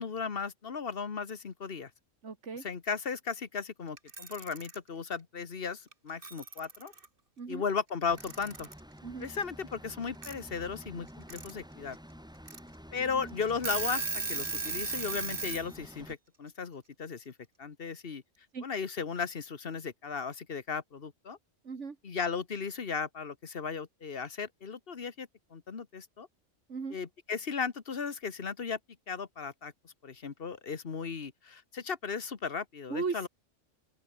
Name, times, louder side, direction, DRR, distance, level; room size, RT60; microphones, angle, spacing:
voice 1, 0.0-1.9 2.6-6.9 7.5-8.7 9.2-12.0 12.9-17.3 17.6-18.2 18.6-21.4 22.0-26.3 26.9-28.8 29.1-33.3, left 5 dB, 45° left, 1.5 m, -36 dB
voice 2, 2.2-2.6 7.4-7.6 9.0-9.3 13.1-13.3 18.5-18.6 21.6-22.0 26.7-27.0 32.9-33.3, right 5 dB, 60° right, 2.2 m, -37 dB
Alarm / Clock, 4.0-4.8 5.9-6.0 6.2-7.1 8.2-8.8 10.2-10.3 11.1-11.5 11.9-12.0 12.5-12.6 13.1-13.2 13.5-15.7, right 4 dB, 40° right, 2.3 m, -36 dB
sound 1, 8.1-16.2, equal, 5° right, 5.4 m, -50 dB
open air
omnidirectional pair, 1.4 m